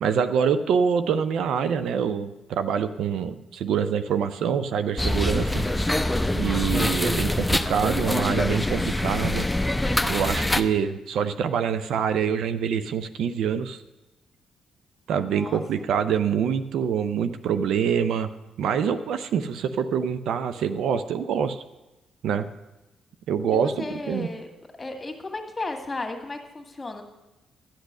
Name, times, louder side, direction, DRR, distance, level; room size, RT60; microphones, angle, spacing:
voice 1, 0.0-5.6 6.3-9.5 10.0-13.8 15.1-18.3 18.6-21.6 22.2-22.5 23.3-24.3, right 7 dB, 65° right, 10 dB, 0.5 m, -25 dB
sound 1, 5.0-10.6, left 1 dB, 10° left, 0.7 m, -24 dB
voice 2, 15.2-15.6 23.5-24.5 24.8-27.0, left 2 dB, 25° left, 5 dB, 1.9 m, -34 dB
12.0 x 8.0 x 6.5 m, 1.0 s
hypercardioid pair, 45°, 0 cm